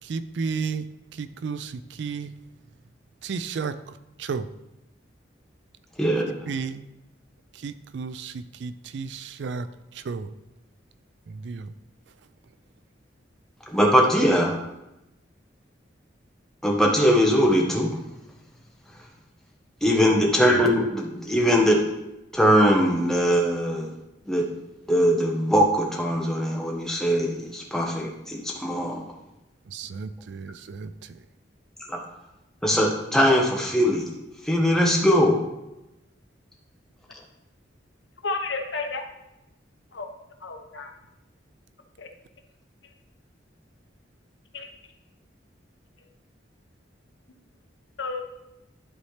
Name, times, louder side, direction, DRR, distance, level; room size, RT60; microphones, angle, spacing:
voice 1, 0.0-2.3 3.2-3.8 4.2-4.5 6.5-6.9 7.5-9.7 9.9-10.3 11.3-11.7 20.5-20.6 29.7-31.2, right 5 dB, 65° right, 13 dB, 0.4 m, -33 dB
voice 2, 6.0-6.5 13.7-14.6 16.6-17.9 19.8-21.8 22.3-23.9 24.3-24.4 24.9-29.0 31.9-32.0 32.6-34.0 34.4-35.4, equal, 5° left, -2 dB, 1.1 m, -21 dB
voice 3, 38.2-39.0 39.9-40.1 40.4-40.9 42.0-42.1 44.5-44.7 48.0-48.2, left 3 dB, 70° left, 5 dB, 0.8 m, -31 dB
11.0 x 4.1 x 3.3 m, 0.94 s
head